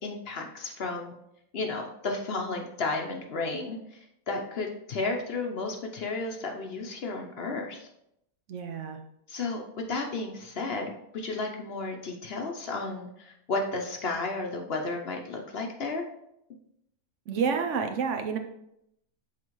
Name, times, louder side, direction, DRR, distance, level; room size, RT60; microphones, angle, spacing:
voice 1, 0.0-1.1 1.5-7.9 9.3-9.6 9.9-16.1, left 3 dB, 55° left, 2 dB, 0.8 m, -33 dB
voice 2, 8.5-9.0 17.3-18.4, right 6 dB, 65° right, 5 dB, 0.9 m, -29 dB
7.4 x 4.2 x 3.0 m, 0.79 s
omnidirectional pair, 1.5 m